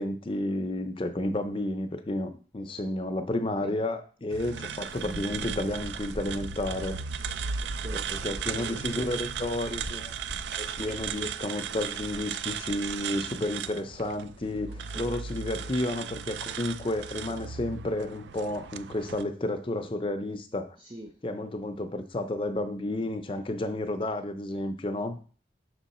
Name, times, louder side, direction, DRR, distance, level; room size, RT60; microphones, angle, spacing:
voice 1, 0.0-7.0 8.1-10.1 10.6-20.8 21.2-25.2, left 1 dB, 30° left, 8 dB, 0.5 m, -31 dB
sound 1, 4.3-19.2, right 7 dB, 85° right, 0.3 m, -36 dB
sound 2, 4.9-13.0, left 1 dB, 60° right, 1.1 m, -43 dB
voice 2, 7.6-9.1 14.9-15.1 20.8-21.1, right 1 dB, 30° right, 4 dB, 0.5 m, -44 dB
6.1 x 3.7 x 4.1 m, 0.39 s
head